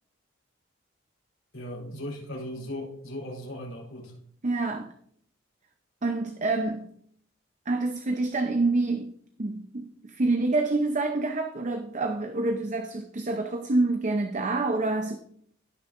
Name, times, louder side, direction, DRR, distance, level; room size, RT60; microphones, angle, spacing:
voice 1, 1.5-4.2, left 1 dB, 80° left, 4.3 m, -37 dB
voice 2, 4.4-4.9 6.0-6.9 7.7-15.2, right 2 dB, 40° right, 0.7 m, -27 dB
16.5 x 6.4 x 2.6 m
head